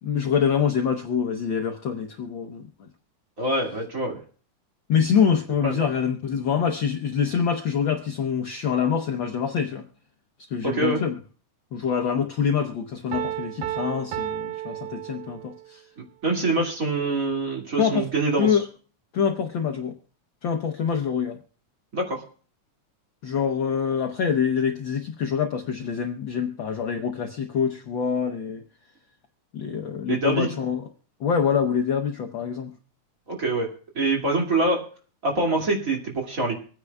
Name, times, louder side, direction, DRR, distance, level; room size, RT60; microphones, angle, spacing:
voice 1, 0.0-2.9 4.9-9.9 10.5-11.1 11.7-15.8 17.8-18.1 18.4-18.7 19.1-20.0 20.4-21.4 23.2-28.6 29.5-30.8 31.2-32.7, left 7 dB, 80° left, 5 dB, 1.0 m, -25 dB
voice 2, 3.4-4.2 5.6-5.7 10.6-11.0 16.2-18.5 21.9-22.2 30.1-30.5 33.3-33.7 33.9-34.8 35.2-36.5, right 2 dB, 30° right, 0 dB, 2.5 m, -24 dB
Piano, 13.1-15.7, right 13 dB, 70° right, 1.5 m, -32 dB
26.0 x 9.7 x 2.3 m, 0.41 s
omnidirectional pair, 3.5 m